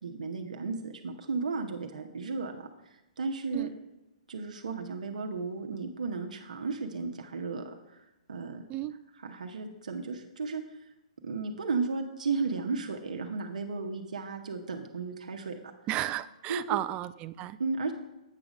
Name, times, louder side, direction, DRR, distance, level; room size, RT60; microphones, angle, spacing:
voice 1, 0.0-2.7 3.2-3.7 4.3-8.0 8.3-8.6 9.2-10.6 11.2-15.5 16.5-16.8 17.6-17.9, right 4 dB, 80° right, 3 dB, 0.9 m, -34 dB
voice 2, 15.9-17.6, right 14 dB, 25° right, 15 dB, 0.3 m, -33 dB
8.5 x 5.0 x 4.9 m, 0.96 s
hypercardioid pair, 135°, 4 cm